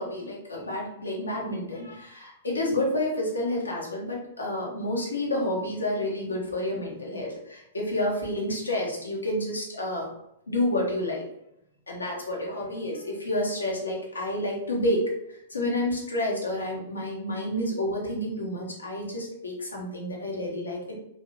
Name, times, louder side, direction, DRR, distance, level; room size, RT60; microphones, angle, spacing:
voice 1, 0.0-10.1 10.5-11.2 11.9-21.0, left 1 dB, 90° left, -2 dB, 1.1 m, -29 dB
3.1 x 2.8 x 2.9 m, 0.79 s
hypercardioid pair, 110°, 0 cm